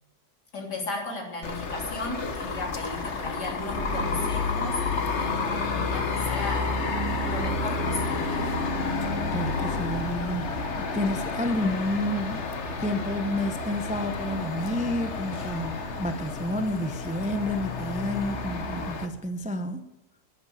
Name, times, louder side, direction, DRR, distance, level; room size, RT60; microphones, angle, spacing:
voice 1, 0.5-4.8 5.2-6.8 7.2-8.5, left 2 dB, 75° left, 1 dB, 3.9 m, -35 dB
sound 1, 1.4-19.1, left 3 dB, 45° left, 1.6 m, -30 dB
voice 2, 8.9-12.4 12.8-19.8, left 1 dB, 5° right, 8 dB, 0.6 m, -30 dB
10.5 x 10.0 x 8.4 m, 0.99 s
omnidirectional pair, 1.8 m